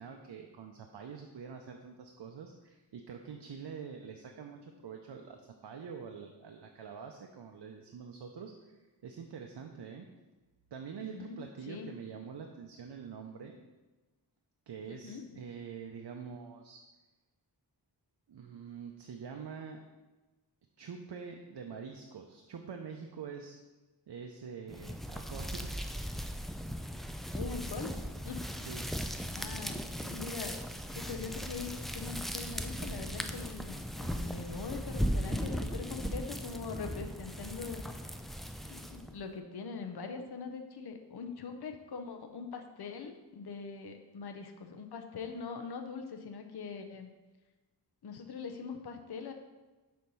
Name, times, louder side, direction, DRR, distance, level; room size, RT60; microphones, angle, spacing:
voice 1, 0.0-10.0 10.7-13.6 14.7-16.8 18.3-19.8 20.8-23.6 24.1-25.7 28.7-28.9, right 6 dB, 80° right, 3 dB, 0.6 m, -45 dB
voice 2, 11.0-11.9 14.9-15.4 27.3-28.7 29.3-30.6 30.9-37.8 38.7-47.1 48.0-49.3, left 5 dB, 65° left, 5 dB, 0.7 m, -42 dB
sound 1, 24.7-39.2, equal, ahead, 0.3 m, -38 dB
6.3 x 4.3 x 5.3 m, 1.2 s
wide cardioid pair, 90°, 41 cm